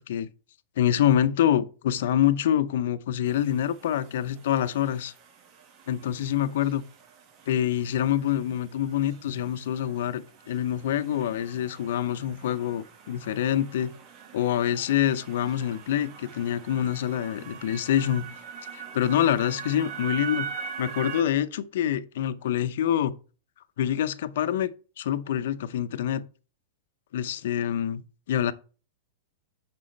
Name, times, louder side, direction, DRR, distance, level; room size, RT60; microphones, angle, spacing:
voice 1, 0.8-5.1 5.9-6.8 7.5-13.9 14.3-18.3 18.7-20.5 20.8-23.2 23.8-24.7 25.0-26.2 27.1-28.0 28.3-28.5, left 10 dB, 70° left, 0.6 m, -26 dB
sound 1, 3.3-21.2, right 7 dB, 45° right, 1.5 m, -43 dB
8.6 x 6.1 x 3.2 m
hypercardioid pair, 110°, 0 cm